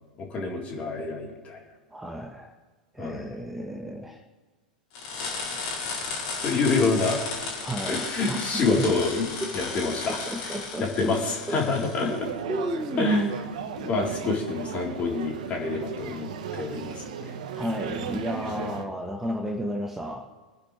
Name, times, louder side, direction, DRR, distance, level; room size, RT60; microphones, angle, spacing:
voice 1, 0.2-1.6 3.0-3.4 6.4-7.2 7.9-9.3 9.5-10.2 10.4-10.5 10.8-12.2 13.0-13.4 13.8-17.3 18.4-18.7, left 3 dB, 30° left, -1 dB, 4.0 m, -27 dB
voice 2, 1.9-2.5 2.9-4.2 7.6-8.4 8.6-8.9 9.4-9.5 10.1-11.2 11.5-11.6 12.0-12.1 12.5-13.1 17.5-20.3, equal, 5° right, 1 dB, 1.4 m, -32 dB
sound 1, 4.9-12.2, left 4 dB, 55° left, 5.3 m, -34 dB
sound 2, 11.8-18.9, right 8 dB, 60° right, 1.4 m, -36 dB
25.0 x 10.0 x 3.4 m, 1.4 s
figure-of-eight pair, 90°, 4 cm